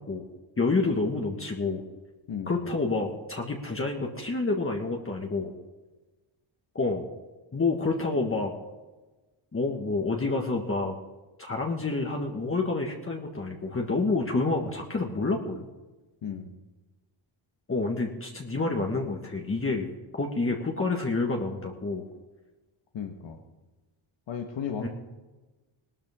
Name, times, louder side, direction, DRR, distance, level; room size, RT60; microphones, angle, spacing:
voice 1, 0.6-1.8 2.5-5.5 6.7-7.1 7.5-8.5 9.5-11.0 11.4-15.7 17.7-19.9 20.2-22.0 24.8-24.9, left 3 dB, 25° left, 0 dB, 1.7 m, -28 dB
voice 2, 22.9-23.4 24.3-24.9, left 7 dB, 60° left, 2 dB, 1.5 m, -34 dB
18.5 x 13.0 x 3.7 m, 1.2 s
cardioid pair, 85°, 49 cm